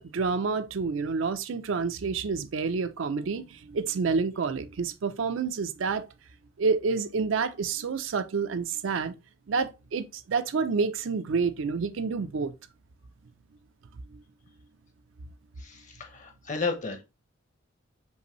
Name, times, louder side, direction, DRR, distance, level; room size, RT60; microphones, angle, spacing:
voice 1, 0.0-6.1 6.6-9.1 9.5-12.5 14.1-14.2, right 5 dB, 75° right, 0.5 m, -28 dB
voice 2, 15.6-17.0, left 4 dB, 40° left, 0.9 m, -33 dB
5.4 x 2.6 x 3.0 m
head